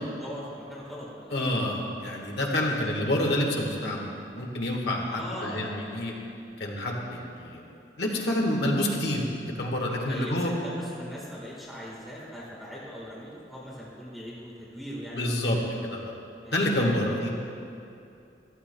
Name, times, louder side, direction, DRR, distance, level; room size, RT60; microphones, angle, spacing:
voice 1, 0.2-1.4 5.1-5.8 10.1-15.6 16.4-16.6, equal, ahead, -6 dB, 1.4 m, -40 dB
voice 2, 1.3-6.1 6.6-7.6 8.0-9.2 9.6-10.5 15.1-15.6 15.9-16.1 16.5-17.3, left 1 dB, 70° left, -1 dB, 1.4 m, -28 dB
14.5 x 12.0 x 2.2 m, 2.6 s
head